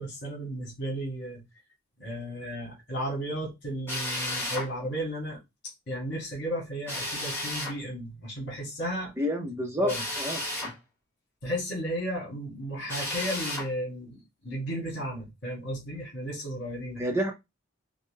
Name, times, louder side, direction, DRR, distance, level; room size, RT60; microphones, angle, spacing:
voice 1, 0.0-1.4 2.0-5.4 5.9-9.1 9.8-10.0 11.4-17.0, equal, 55° left, -2 dB, 2.5 m, -34 dB
Drill, 3.9-4.7 6.9-7.8 9.9-10.8 12.9-13.7, left 1 dB, 10° left, 1.4 m, -33 dB
voice 2, 9.2-9.9 10.2-10.7 17.0-17.3, equal, 15° right, 2 dB, 0.7 m, -29 dB
5.0 x 2.2 x 3.3 m, 0.22 s
head